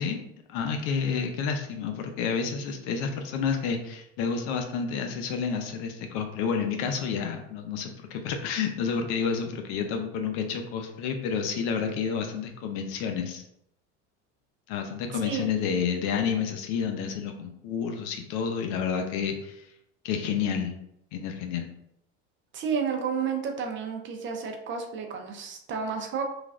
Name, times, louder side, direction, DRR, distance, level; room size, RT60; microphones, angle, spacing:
voice 1, 0.0-13.4 14.7-19.6 20.0-20.8 21.1-21.7, left 6 dB, 70° left, 5 dB, 0.6 m, -30 dB
voice 2, 15.1-15.5 22.5-26.2, right 6 dB, 35° right, 3 dB, 0.5 m, -31 dB
3.1 x 2.4 x 2.3 m, 0.78 s
supercardioid pair, 100°, 34 cm